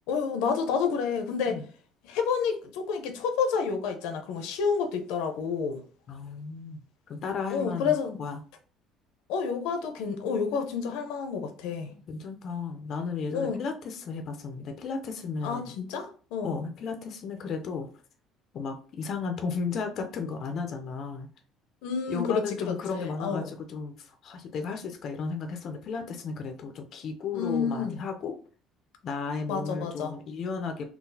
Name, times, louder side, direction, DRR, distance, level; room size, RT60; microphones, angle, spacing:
voice 1, 0.1-1.6 2.0-5.8 7.5-8.1 9.3-11.9 13.3-13.6 15.4-16.6 21.8-23.5 27.3-27.9 29.5-30.2, left 6 dB, 90° left, 0.5 m, -29 dB
voice 2, 6.1-6.8 7.1-8.4 11.9-15.6 16.4-17.9 18.5-21.3 22.1-28.4 29.0-30.9, left 5 dB, 40° left, 0.4 m, -34 dB
3.8 x 2.3 x 2.6 m
cardioid pair, 165°, 0 cm